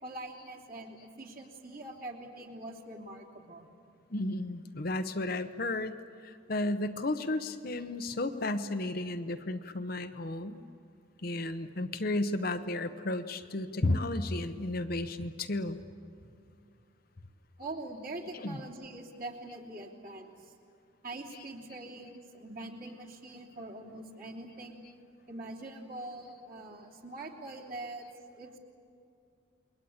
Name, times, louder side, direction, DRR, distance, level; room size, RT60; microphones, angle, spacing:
voice 1, 0.0-3.6 16.2-16.5 17.6-20.5 21.0-24.8 25.3-28.1 28.4-28.6, right 2 dB, 45° right, -2 dB, 3.1 m, -43 dB
voice 2, 4.1-10.6 11.2-15.8 18.3-18.6, left 2 dB, 45° left, 8 dB, 0.9 m, -33 dB
28.5 x 22.0 x 8.8 m, 2.4 s
head